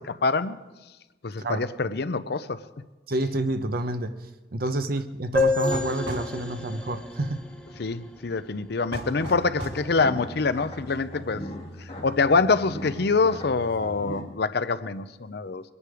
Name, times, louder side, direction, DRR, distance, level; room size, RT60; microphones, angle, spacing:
voice 1, 0.2-0.6 1.2-2.6 7.8-11.4 12.0-15.6, left 4 dB, 65° left, 13 dB, 0.6 m, -25 dB
voice 2, 3.1-4.2 4.5-7.4, right 2 dB, 55° right, 10 dB, 0.9 m, -28 dB
sound 1, 5.4-8.9, left 3 dB, 5° left, 1.3 m, -29 dB
sound 2, 5.4-6.3 8.9-9.8, right 1 dB, 75° right, 3.3 m, -35 dB
sound 3, 9.0-14.2, equal, 35° left, 2.5 m, -39 dB
22.5 x 9.8 x 4.9 m, 1.1 s
head